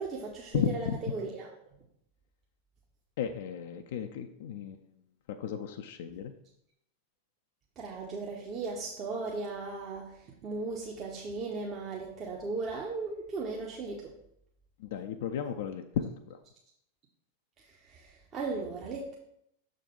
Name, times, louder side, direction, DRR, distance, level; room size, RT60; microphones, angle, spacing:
voice 1, 0.0-1.5 7.8-14.1 17.8-19.1, right 3 dB, 30° right, -2 dB, 1.0 m, -37 dB
voice 2, 0.5-1.0 3.2-4.8 5.4-6.3 14.8-16.4, left 8 dB, 55° left, 6 dB, 0.5 m, -34 dB
6.5 x 3.9 x 5.2 m, 0.75 s
figure-of-eight pair, 90°, 0 cm